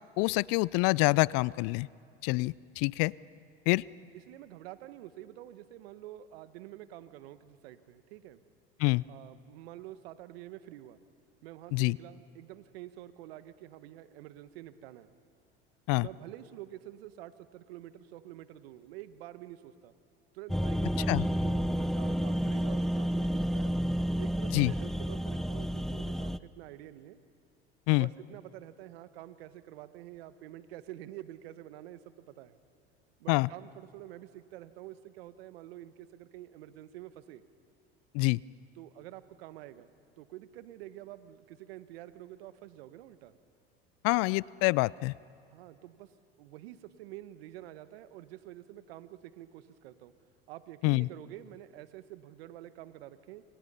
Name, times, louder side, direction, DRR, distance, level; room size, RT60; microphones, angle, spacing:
voice 1, 0.2-1.9 2.2-3.1 3.7-3.8 8.8-9.0 11.7-12.0 15.9-16.1 21.1-21.2 24.5-24.7 27.9-28.1 33.3-33.5 38.1-38.4 44.0-45.1 50.8-51.1, left 25 dB, 55° left, 23 dB, 0.5 m, -26 dB
voice 2, 4.1-8.4 9.1-11.0 11.4-15.1 16.0-19.9 20.3-23.8 24.2-27.2 27.9-32.6 33.2-37.4 38.7-39.9 40.2-43.4 45.5-46.1 46.4-50.1 50.5-53.4, right 13 dB, 70° right, 13 dB, 1.4 m, -48 dB
sound 1, 20.5-26.4, equal, ahead, 0.5 m, -30 dB
28.5 x 27.0 x 5.6 m, 2.5 s
hypercardioid pair, 90°, 31 cm